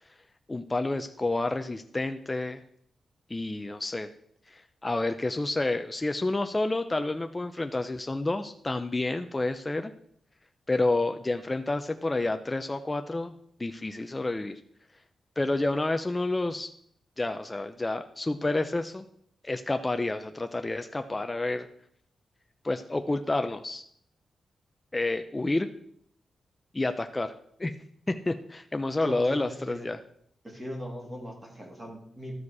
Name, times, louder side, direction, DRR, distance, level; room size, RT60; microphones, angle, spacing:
voice 1, 0.5-2.6 3.3-4.1 4.5-9.9 10.7-13.3 13.6-14.6 15.4-16.7 17.2-19.1 19.4-21.7 22.6-23.8 24.9-25.7 26.7-27.3 27.6-27.7 28.1-30.0, left 2 dB, 15° left, 8 dB, 0.4 m, -29 dB
voice 2, 29.0-29.9 30.4-32.3, equal, 15° right, -1 dB, 2.2 m, -39 dB
12.5 x 5.0 x 4.7 m, 0.67 s
wide cardioid pair, 145°, 0 cm